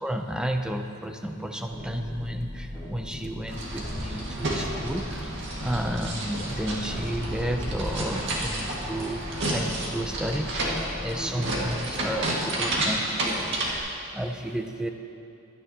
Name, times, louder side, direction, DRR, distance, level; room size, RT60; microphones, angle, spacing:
voice 1, 0.0-5.3 5.6-13.9 14.1-14.9, right 1 dB, 5° right, 4 dB, 0.6 m, -32 dB
sound 1, 1.6-11.1, equal, 20° right, 2.4 m, -40 dB
sound 2, 3.5-13.8, right 1 dB, 60° right, 2.0 m, -31 dB
16.0 x 12.5 x 2.9 m, 2.7 s
head